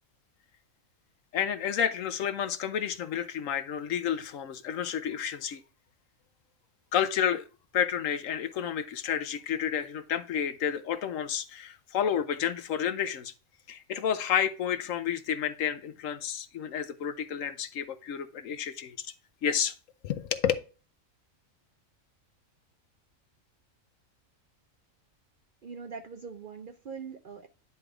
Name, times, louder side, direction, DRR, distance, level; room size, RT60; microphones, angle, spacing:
voice 1, 1.3-5.6 6.9-7.4 7.7-13.3 13.7-19.1 19.4-19.7 20.0-20.5, left 9 dB, 75° left, 1.1 m, -30 dB
voice 2, 25.6-27.5, right 5 dB, 55° right, 0.6 m, -42 dB
9.9 x 3.4 x 4.8 m
omnidirectional pair, 1.4 m